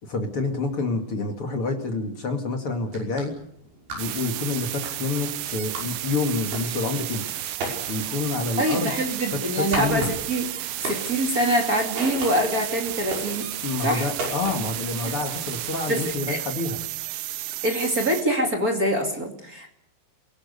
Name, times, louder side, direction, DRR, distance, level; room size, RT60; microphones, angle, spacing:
voice 1, 0.0-3.3 3.9-7.3 7.9-8.9 9.3-10.1 13.6-16.8, left 3 dB, 45° left, 4 dB, 2.1 m, -28 dB
sound 1, 2.8-14.8, right 2 dB, 60° right, 7.7 m, -38 dB
sound 2, 4.0-18.2, right 13 dB, 85° right, 3.5 m, -32 dB
voice 2, 8.6-10.0 10.3-10.4 10.8-13.5 13.8-14.1 15.0-15.1 15.9-16.0 16.3-16.4 17.6-19.7, equal, 30° right, 2 dB, 2.0 m, -24 dB
29.5 x 18.0 x 6.7 m, 0.70 s
omnidirectional pair, 5.2 m